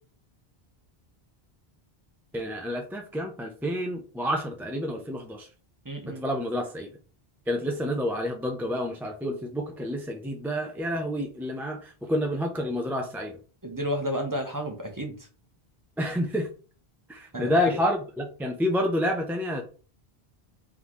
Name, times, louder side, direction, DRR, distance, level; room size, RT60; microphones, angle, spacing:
voice 1, 2.3-5.5 6.1-6.9 7.5-13.4 16.0-16.5 17.1-19.6, equal, 5° right, 2 dB, 0.4 m, -29 dB
voice 2, 5.8-6.3 13.6-15.3 17.3-17.7, equal, 20° right, 3 dB, 0.8 m, -32 dB
4.1 x 3.6 x 3.1 m, 0.37 s
omnidirectional pair, 1.1 m